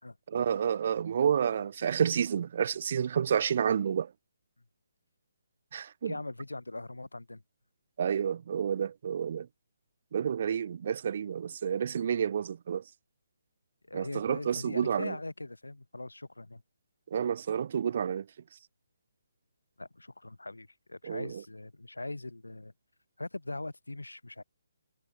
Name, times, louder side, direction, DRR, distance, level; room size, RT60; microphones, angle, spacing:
voice 1, 0.3-4.1 5.7-6.1 8.0-9.5 10.1-12.8 13.9-15.1 17.1-18.2 21.0-21.4, right 8 dB, 45° right, 1.8 m, -30 dB
voice 2, 6.0-7.4 12.1-12.3 13.9-16.6 19.8-22.7 23.2-24.4, left 2 dB, 75° left, 5.1 m, -41 dB
figure-of-eight pair, 140°, 0 cm